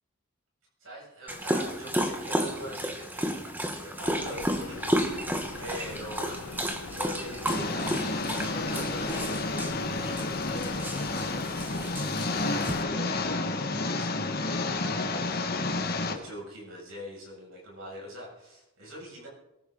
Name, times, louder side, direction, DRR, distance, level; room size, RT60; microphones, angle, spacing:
voice 1, 0.8-19.3, equal, 75° right, -3 dB, 7.2 m, -43 dB
Dog, 1.3-12.8, equal, 10° right, 1.1 m, -32 dB
sound 1, 4.0-12.0, left 4 dB, 85° left, 0.8 m, -43 dB
Engine, 7.5-16.1, left 3 dB, 45° left, 1.6 m, -30 dB
22.5 x 14.0 x 4.0 m, 0.94 s
head